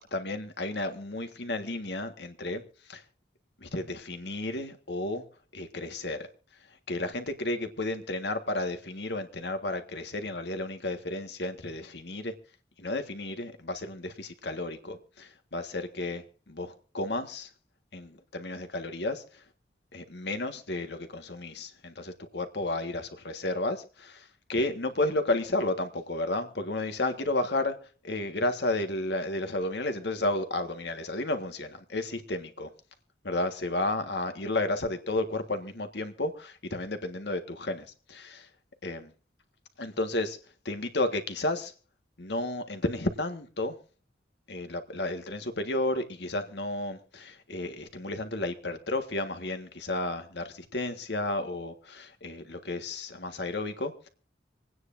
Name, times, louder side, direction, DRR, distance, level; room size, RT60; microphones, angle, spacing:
voice 1, 0.0-2.6 2.9-3.0 3.6-5.2 5.5-6.3 6.9-12.3 12.8-17.5 17.9-19.4 19.9-27.8 28.0-32.7 33.2-38.5 38.8-39.1 39.8-40.4 40.6-41.7 42.2-43.8 44.5-54.1, left 2 dB, 70° left, 1.6 m, -32 dB
26.5 x 9.6 x 2.6 m
head